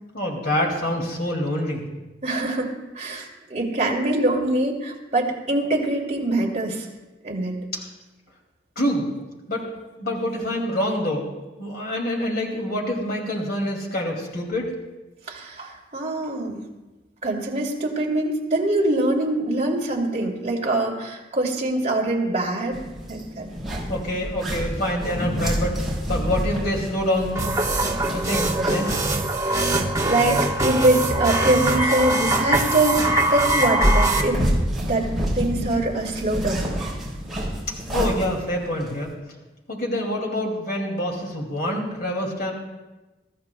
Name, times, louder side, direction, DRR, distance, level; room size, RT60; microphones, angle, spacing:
voice 1, 0.1-1.9 7.7-7.8 8.8-9.1 9.5-9.6 10.0-11.3 11.6-14.7 23.9-27.5 28.1-28.9 37.9-39.1 39.7-42.5, left 1 dB, 55° left, 0 dB, 2.4 m, -26 dB
voice 2, 2.2-6.9 7.2-7.6 15.3-16.7 17.2-22.8 23.1-23.5 29.4-29.8 30.0-34.4 34.8-35.1 35.3-36.7, right 2 dB, 35° right, -2 dB, 2.7 m, -24 dB
sound 1, 22.7-29.1 29.4-29.5 32.4-38.9, equal, ahead, 4.0 m, -28 dB
sound 2, 27.4-34.2, right 2 dB, 20° right, 1.2 m, -22 dB
23.5 x 13.5 x 2.3 m, 1.1 s
head